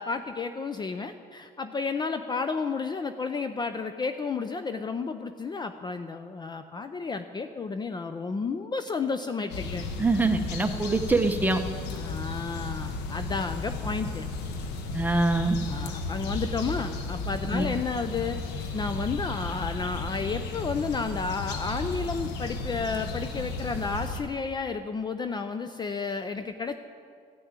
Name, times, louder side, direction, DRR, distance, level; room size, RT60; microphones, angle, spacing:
voice 1, 0.0-9.9 11.9-14.3 15.7-18.4 18.7-26.8, left 4 dB, 25° left, 9 dB, 0.5 m, -32 dB
sound 1, 9.5-24.2, left 3 dB, 90° left, 1.2 m, -34 dB
voice 2, 10.0-11.6 14.9-15.6 17.5-17.6, right 2 dB, 10° right, 5 dB, 1.0 m, -24 dB
14.5 x 6.5 x 8.9 m, 2.2 s
cardioid pair, 110°, 17 cm